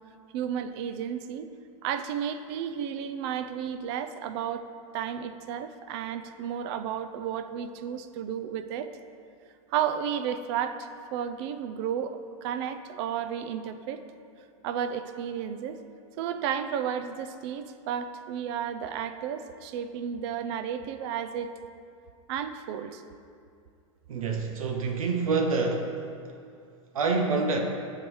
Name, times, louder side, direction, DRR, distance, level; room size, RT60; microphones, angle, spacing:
voice 1, 0.3-1.5 1.8-4.6 4.9-8.9 9.7-14.0 14.6-15.8 16.2-21.5 22.3-23.0, right 8 dB, 50° right, 9 dB, 0.5 m, -32 dB
voice 2, 24.1-25.9 26.9-27.6, right 4 dB, 85° right, 2 dB, 0.8 m, -26 dB
8.2 x 7.5 x 3.1 m, 2.4 s
hypercardioid pair, 115°, 17 cm